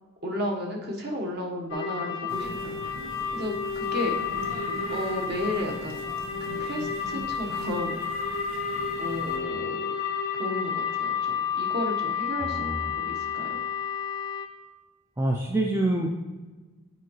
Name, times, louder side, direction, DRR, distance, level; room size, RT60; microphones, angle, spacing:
voice 1, 0.2-3.0 3.3-4.1 4.9-6.0 6.6-8.2 9.0-9.9 10.3-13.6, left 1 dB, 50° right, 0 dB, 1.1 m, -33 dB
sound 1, 1.7-14.5, left 6 dB, 70° left, 0.6 m, -31 dB
sound 2, 2.3-9.4, right 1 dB, 75° right, 0.8 m, -42 dB
voice 2, 12.4-12.8 15.2-16.1, right 2 dB, 10° right, 1 dB, 0.4 m, -26 dB
8.2 x 4.6 x 3.0 m, 1.3 s
head